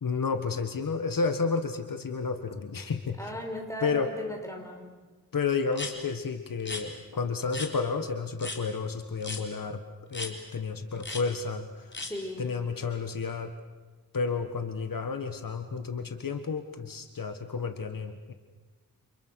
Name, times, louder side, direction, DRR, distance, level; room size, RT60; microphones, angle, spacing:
voice 1, 0.0-3.3 3.8-4.1 5.3-9.8 10.1-12.0 12.4-13.5 14.1-18.3, left 5 dB, 65° left, 7 dB, 1.6 m, -31 dB
voice 2, 3.2-4.8 12.0-12.5, left 1 dB, 10° left, 2 dB, 5.1 m, -36 dB
sound 1, 5.7-5.9 6.6-6.8 7.5-7.7 8.4-8.6 9.2-9.4 10.1-10.3 11.0-11.2 11.9-12.1, left 3 dB, 30° left, 4.1 m, -36 dB
29.5 x 28.0 x 6.4 m, 1.3 s
wide cardioid pair, 115°, 36 cm